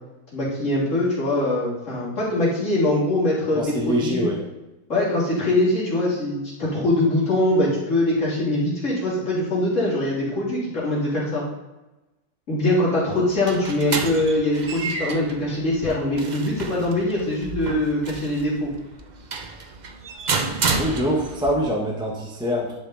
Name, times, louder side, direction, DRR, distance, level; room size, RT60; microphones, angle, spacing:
voice 1, 0.3-4.3 4.9-11.4 12.5-18.7, left 1 dB, 45° left, -7 dB, 3.4 m, -23 dB
voice 2, 3.6-4.4 20.8-22.7, equal, 5° right, -1 dB, 0.9 m, -24 dB
sound 1, 13.1-21.5, right 4 dB, 60° right, 0.4 m, -30 dB
11.0 x 5.6 x 3.9 m, 1.0 s
omnidirectional pair, 1.8 m